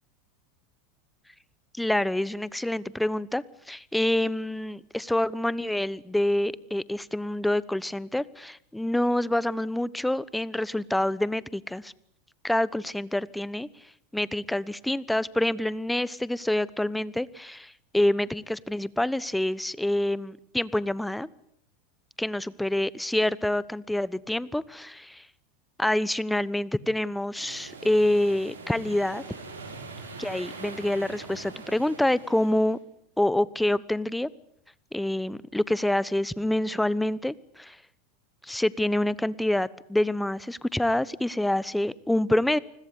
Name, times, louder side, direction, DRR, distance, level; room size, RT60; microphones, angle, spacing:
voice 1, 1.7-11.9 12.4-13.7 14.1-21.3 22.2-25.2 25.8-29.2 30.2-32.8 33.2-34.3 34.9-37.8 38.4-42.6, left 1 dB, 5° left, 20 dB, 1.1 m, -27 dB
sound 1, 27.4-32.7, right 4 dB, 90° right, 7.1 m, -43 dB
29.0 x 21.0 x 8.5 m, 0.66 s
hypercardioid pair, 90°, 0 cm